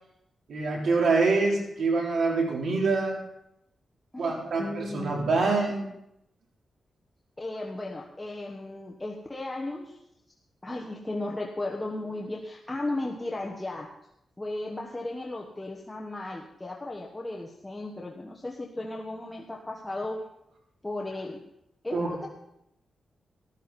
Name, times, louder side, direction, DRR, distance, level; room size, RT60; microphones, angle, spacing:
voice 1, 0.5-3.2 4.2-5.9 21.9-22.1, right 3 dB, 70° right, -2 dB, 3.8 m, -25 dB
voice 2, 4.1-5.3 7.4-10.0 10.6-13.9 14.4-20.2 20.8-21.4 21.8-22.3, left 2 dB, 15° left, -1 dB, 1.3 m, -35 dB
14.5 x 13.5 x 4.2 m, 0.81 s
wide cardioid pair, 130°, 0 cm